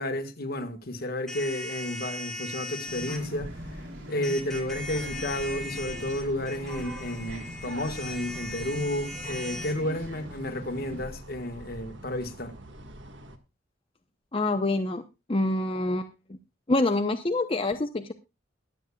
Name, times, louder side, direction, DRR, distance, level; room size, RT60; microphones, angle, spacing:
voice 1, 0.0-3.6 4.1-12.5, left 1 dB, 55° left, 1.5 m, -32 dB
sound 1, 1.3-3.2 4.2-9.8, left 1 dB, 5° left, 3.1 m, -39 dB
sound 2, 2.8-11.0, equal, 85° right, 3.7 m, -42 dB
sound 3, 4.6-13.4, right 1 dB, 70° right, 1.7 m, -44 dB
voice 2, 14.3-15.0 15.3-16.1 16.7-18.1, left 2 dB, 30° left, 0.7 m, -26 dB
22.5 x 8.3 x 2.3 m
head